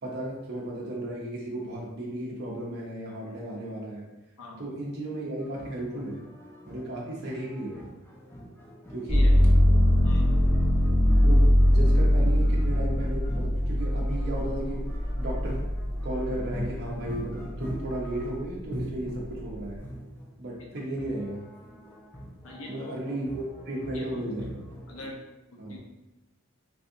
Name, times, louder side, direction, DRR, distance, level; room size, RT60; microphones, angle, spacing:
voice 1, 0.0-4.0 4.6-6.2 6.6-7.8 8.9-9.3 11.2-14.8 15.2-15.7 16.0-19.8 20.4-21.5 22.7-24.6 25.6-25.8, right 1 dB, 50° right, -3 dB, 0.6 m, -34 dB
sound 1, 5.4-25.2, equal, 10° left, 0.5 m, -42 dB
sound 2, 9.1-16.9 17.4-18.2, equal, 10° right, 1.0 m, -22 dB
voice 2, 10.0-10.4 20.8-20.9 22.4-23.0 23.9-24.4 24.9-25.2 25.5-25.8, left 2 dB, 70° left, -1 dB, 0.7 m, -42 dB
3.3 x 2.6 x 2.6 m, 0.97 s
head